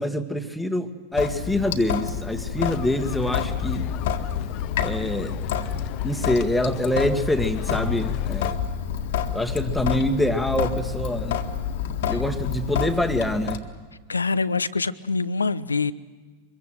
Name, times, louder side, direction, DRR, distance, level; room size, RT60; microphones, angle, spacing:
voice 1, 0.0-3.8 4.8-5.3 6.0-8.6 9.3-11.4 12.1-13.6, left 1 dB, 5° left, 6 dB, 1.7 m, -25 dB
Sink (filling or washing) / Drip, 1.1-13.6, left 8 dB, 55° left, 1.8 m, -28 dB
sound 1, 2.6-8.5, left 10 dB, 40° left, 1.0 m, -35 dB
voice 2, 14.1-15.9, left 4 dB, 75° left, 15 dB, 0.8 m, -25 dB
25.0 x 22.5 x 7.8 m, 1.4 s
figure-of-eight pair, 90°, 0 cm